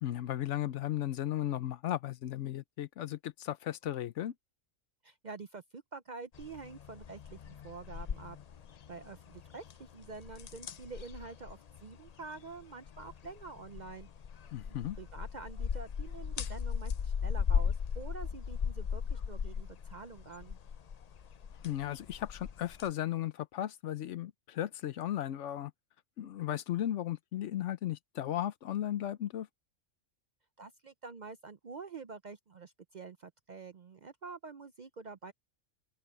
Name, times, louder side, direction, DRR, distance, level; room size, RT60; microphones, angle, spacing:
voice 1, 0.0-4.3 14.5-15.0 21.6-25.7 26.2-29.5, left 12 dB, 70° left, 1.0 m, -35 dB
voice 2, 5.0-8.4 8.9-14.1 14.6-20.6 30.6-35.3, right 4 dB, 45° right, 0.6 m, -47 dB
sound 1, 6.3-22.9, left 7 dB, 55° left, 0.4 m, -38 dB
open air
omnidirectional pair, 1.3 m